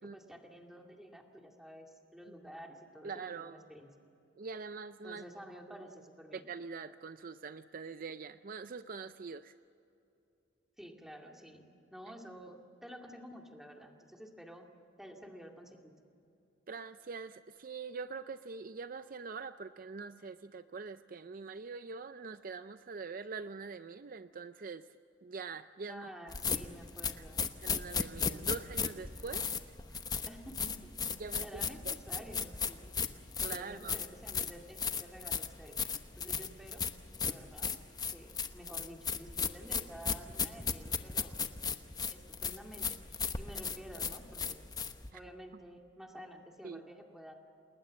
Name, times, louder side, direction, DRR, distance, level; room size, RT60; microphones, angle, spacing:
voice 1, 0.0-3.9 5.0-6.4 10.8-11.6 11.9-14.6 15.0-15.9 25.9-27.4 30.2-30.9 31.4-33.1 33.5-35.8 36.2-36.8 37.2-37.7 38.1-41.4 42.1-44.6 45.1-47.3, equal, ahead, 2 dB, 2.3 m, -51 dB
voice 2, 3.0-3.6 4.4-5.2 6.3-9.5 16.7-24.9 25.2-26.1 27.6-29.5 29.9-30.0 31.2-31.9 33.4-33.9 45.1-45.2 46.6-46.8, right 4 dB, 45° right, 11 dB, 0.5 m, -44 dB
sound 1, 26.3-45.1, left 6 dB, 20° left, 0.9 m, -36 dB
29.0 x 20.0 x 7.5 m, 2.8 s
head